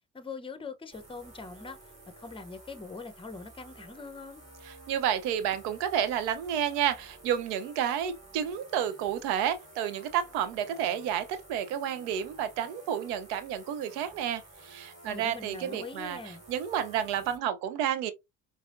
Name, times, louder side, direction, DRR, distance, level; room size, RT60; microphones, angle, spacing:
voice 1, 0.1-1.8 2.2-4.4 15.0-16.4, left 4 dB, 15° left, 0.6 m, -42 dB
sound 1, 0.9-17.4, right 1 dB, 15° right, 2.0 m, -52 dB
voice 2, 4.7-16.2 16.5-18.1, right 9 dB, 80° right, 0.6 m, -30 dB
4.8 x 2.0 x 2.4 m
hypercardioid pair, 50°, 39 cm